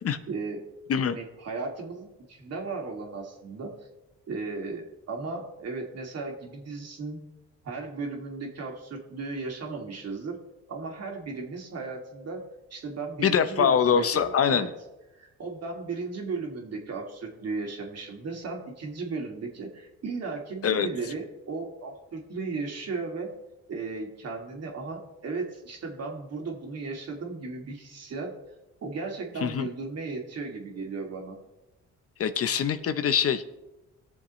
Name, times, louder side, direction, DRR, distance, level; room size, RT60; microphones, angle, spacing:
voice 1, 0.3-0.7 1.0-3.7 4.3-7.2 7.6-10.4 10.7-12.4 12.7-14.1 14.5-14.7 15.1-23.3 23.7-28.3 28.8-31.4, right 4 dB, 55° right, 1 dB, 2.4 m, -35 dB
voice 2, 13.2-14.7 20.6-20.9 29.4-29.7 32.2-33.5, left 7 dB, 50° left, 11 dB, 0.7 m, -24 dB
19.5 x 7.0 x 3.1 m, 1.0 s
cardioid pair, 90°, 30 cm